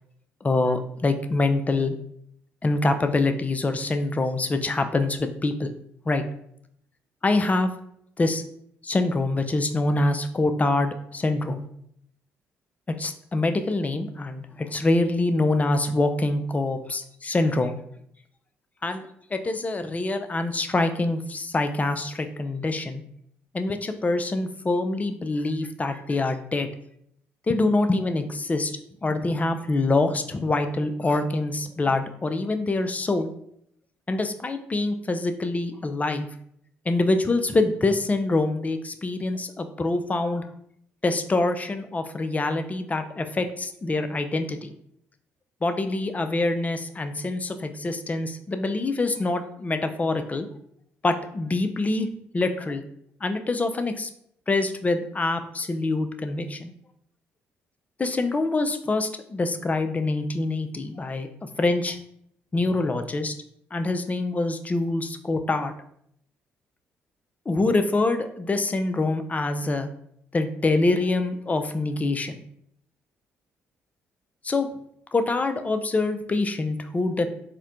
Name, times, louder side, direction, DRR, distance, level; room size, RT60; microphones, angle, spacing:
voice 1, 0.4-1.9 2.6-5.7 6.1-6.2 7.2-7.7 8.2-8.4 8.8-11.6 13.0-17.8 18.8-19.0 19.3-23.0 23.5-26.7 27.5-28.7 29.0-33.3 34.1-36.3 36.9-40.5 41.0-44.7 45.6-50.5 51.0-52.1 52.3-52.8 53.2-54.1 54.5-56.7 58.0-61.3 61.6-62.0 62.5-63.3 63.7-65.7 67.5-69.9 70.3-72.4 74.4-74.7 75.1-77.3, left 2 dB, 25° left, 8 dB, 0.4 m, -25 dB
4.2 x 2.1 x 2.5 m, 0.70 s
hypercardioid pair, 55°, 6 cm